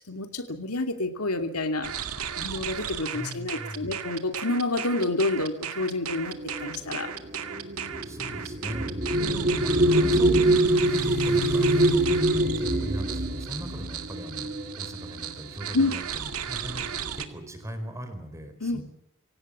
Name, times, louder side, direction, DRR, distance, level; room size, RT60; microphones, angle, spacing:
voice 1, 0.1-1.9 2.4-6.3 6.6-7.1 9.1-9.6 15.7-16.0 18.6-18.8, left 2 dB, 85° left, 7 dB, 2.7 m, -28 dB
sound 1, 1.8-17.3, right 8 dB, 80° right, 2.2 m, -35 dB
voice 2, 3.1-4.0 8.0-14.5 14.8-18.8, equal, 15° right, 8 dB, 4.8 m, -40 dB
sound 2, 6.3-15.2 16.2-16.3 16.7-17.2, right 1 dB, 35° right, 2.6 m, -25 dB
sound 3, 8.1-16.0, left 1 dB, 50° left, 3.5 m, -40 dB
26.0 x 17.5 x 7.5 m, 0.74 s
head